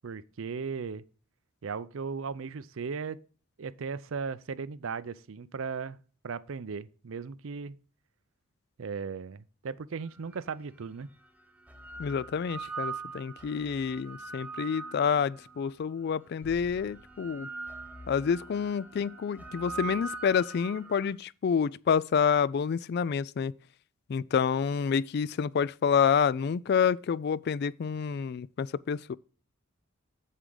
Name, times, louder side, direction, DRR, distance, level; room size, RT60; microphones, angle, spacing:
voice 1, 0.0-1.0 1.6-3.2 3.6-6.0 6.2-7.8 8.8-11.1, right 5 dB, 70° right, 0.5 m, -37 dB
sound 1, 10.3-10.4 11.4-15.7 16.4-21.1, right 4 dB, 5° right, 0.8 m, -42 dB
voice 2, 12.0-17.5 18.1-23.5 24.1-29.2, left 6 dB, 50° left, 0.3 m, -28 dB
8.1 x 7.4 x 3.9 m
head